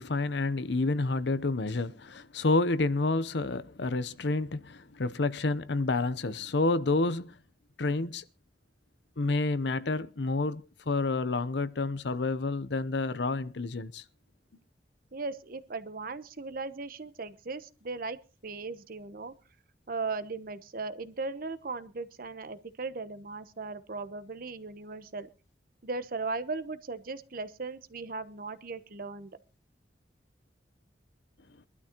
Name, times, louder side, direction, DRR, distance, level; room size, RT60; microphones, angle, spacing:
voice 1, 0.0-7.3 7.8-8.2 9.2-14.0, left 3 dB, 75° left, 0.7 m, -29 dB
voice 2, 15.1-19.3 19.9-25.3 25.8-29.3, right 3 dB, 55° right, 1.0 m, -37 dB
23.5 x 12.0 x 3.0 m
head